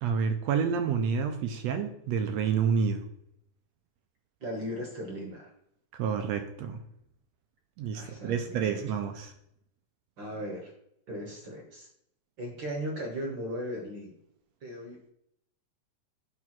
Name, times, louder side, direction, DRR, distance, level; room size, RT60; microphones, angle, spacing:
voice 1, 0.0-3.0 6.0-6.8 7.8-9.3, right 6 dB, 75° right, 6 dB, 1.7 m, -29 dB
voice 2, 4.4-5.5 7.9-9.0 10.2-10.7 11.1-11.9 12.4-14.2 14.6-15.1, equal, 50° right, 1 dB, 1.4 m, -37 dB
9.2 x 3.5 x 5.9 m, 0.73 s
omnidirectional pair, 3.5 m